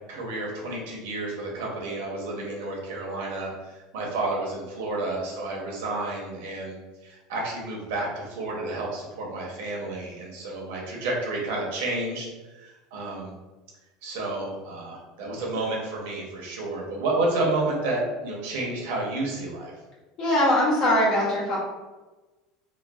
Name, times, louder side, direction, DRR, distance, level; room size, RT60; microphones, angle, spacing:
voice 1, 0.1-6.8 7.0-12.3 12.6-13.3 14.0-19.7, right 2 dB, 80° right, -2 dB, 0.8 m, -30 dB
voice 2, 20.2-21.6, left 1 dB, 50° left, -6 dB, 1.1 m, -21 dB
3.1 x 2.1 x 2.3 m, 1.2 s
supercardioid pair, 130°, 0 cm